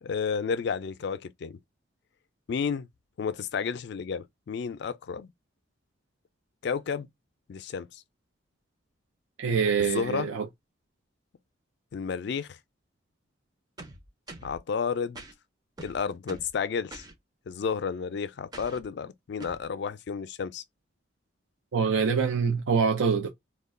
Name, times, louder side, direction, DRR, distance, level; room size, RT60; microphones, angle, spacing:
voice 1, 0.0-1.6 2.5-2.9 3.2-5.3 6.6-7.1 7.5-8.0 9.8-10.3 11.9-12.6 14.4-15.2 15.8-17.0 17.5-20.6, left 6 dB, 60° left, 0.3 m, -31 dB
voice 2, 9.4-10.5 21.7-23.3, right 6 dB, 80° right, 0.5 m, -25 dB
crunchy distorted electronic drums, 13.8-14.6 15.1-15.3 15.8-16.5 16.9-17.1 18.5-18.8 19.4-19.6, right 2 dB, 20° right, 0.5 m, -44 dB
2.3 x 2.2 x 3.5 m
head